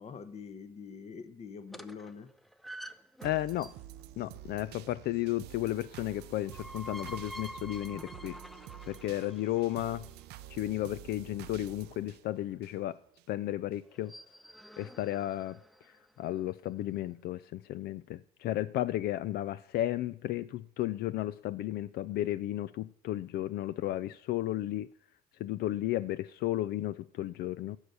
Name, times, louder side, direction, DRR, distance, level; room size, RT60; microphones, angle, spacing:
voice 1, 0.0-2.3, left 5 dB, 40° left, 0.9 m, -45 dB
sound 1, 1.7-4.0 6.2-10.2 13.9-16.1, equal, ahead, 0.4 m, -48 dB
voice 2, 3.2-3.7 4.2-8.4 8.9-10.1 10.5-13.0 13.3-14.1 14.8-15.6 16.2-24.9 25.4-27.8, left 14 dB, 70° left, 0.4 m, -33 dB
sound 2, 3.2-13.3 13.7-13.8, right 13 dB, 75° right, 0.5 m, -49 dB
11.5 x 6.6 x 6.8 m
cardioid pair, 110°, 17 cm